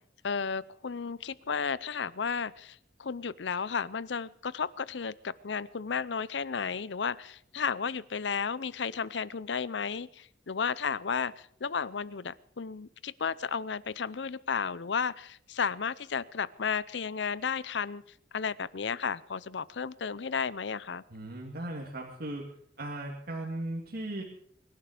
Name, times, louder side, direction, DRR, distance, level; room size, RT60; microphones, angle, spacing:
voice 1, 0.2-18.0 18.3-21.0, left 6 dB, 70° left, 20 dB, 0.6 m, -33 dB
voice 2, 21.1-22.5 22.8-24.2, right 1 dB, 55° right, -2 dB, 2.3 m, -37 dB
24.0 x 11.5 x 5.0 m, 0.67 s
head